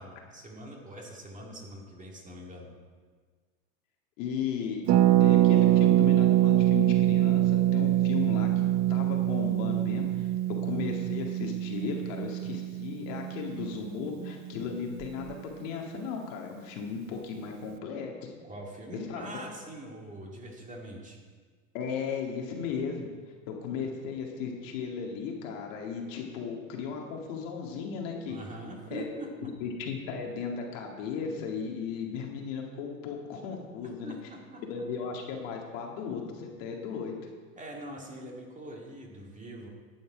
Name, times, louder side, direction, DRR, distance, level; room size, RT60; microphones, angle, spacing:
voice 1, 0.0-2.7 18.5-21.2 28.3-29.5 33.8-34.6 37.6-39.7, right 1 dB, 20° right, -1 dB, 2.1 m, -43 dB
voice 2, 4.2-4.8 5.2-8.5 8.9-10.3 10.6-18.1 18.9-19.2 21.7-23.1 23.5-28.4 28.9-29.2 29.6-34.1 34.7-37.2, left 6 dB, 65° left, 1 dB, 2.1 m, -36 dB
Harp, 4.9-14.5 14.7-14.8 15.0-15.3, right 14 dB, 40° right, 0.6 m, -24 dB
11.0 x 7.9 x 4.9 m, 1.5 s
supercardioid pair, 115°, 41 cm